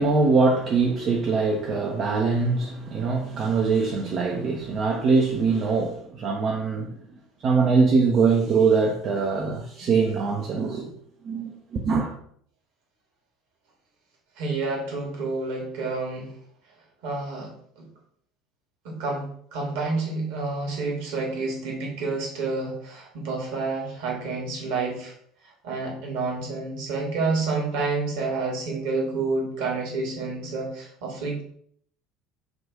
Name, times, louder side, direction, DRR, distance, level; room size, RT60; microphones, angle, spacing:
voice 1, 0.0-6.9 7.4-10.9 11.2-12.1, right 4 dB, 40° right, 0.5 m, -23 dB
voice 2, 14.4-16.3 17.0-17.8 18.8-19.2 19.5-25.1 25.6-31.4, right 3 dB, 60° right, 1.2 m, -29 dB
3.6 x 2.4 x 3.7 m
figure-of-eight pair, 65°, 0 cm